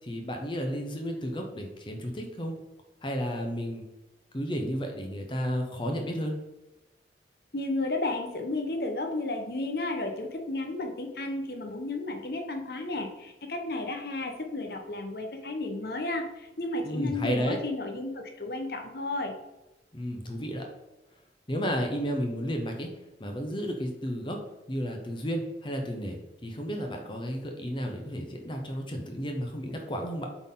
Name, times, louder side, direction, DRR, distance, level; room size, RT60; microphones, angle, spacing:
voice 1, 0.0-2.5 3.0-3.8 4.3-6.4 16.8-17.6 19.9-20.7 21.5-22.9 23.2-24.4 24.7-30.3, equal, 25° left, 3 dB, 0.8 m, -32 dB
voice 2, 7.5-19.3, left 2 dB, 55° left, 4 dB, 1.0 m, -33 dB
7.9 x 4.1 x 3.8 m, 0.98 s
head